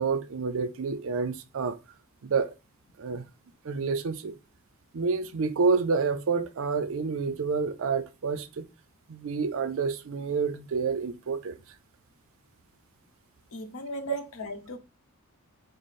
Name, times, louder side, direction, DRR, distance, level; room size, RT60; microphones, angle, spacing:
voice 1, 0.0-1.8 2.2-2.5 3.0-3.2 3.6-4.3 4.9-8.6 9.1-11.5, right 5 dB, 65° right, 0.5 m, -28 dB
voice 2, 13.5-14.8, left 1 dB, 65° left, 0.7 m, -37 dB
4.9 x 2.0 x 4.0 m
head